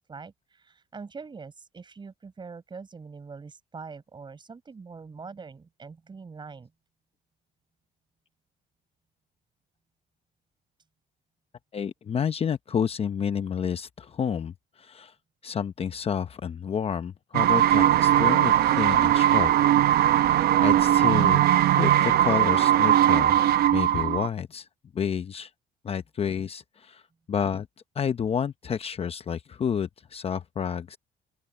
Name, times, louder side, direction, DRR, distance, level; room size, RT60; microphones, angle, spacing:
voice 1, 0.1-6.7, right 5 dB, 25° right, 5.6 m, -43 dB
voice 2, 11.7-15.1 15.4-19.5 20.6-21.5 21.8-23.4 23.7-24.7 24.9-25.5 25.8-27.0 27.3-27.7 27.9-31.0, left 7 dB, 35° left, 0.8 m, -29 dB
sound 1, 17.3-24.3, right 12 dB, 70° right, 0.8 m, -20 dB
open air
cardioid pair, 110°, 17 cm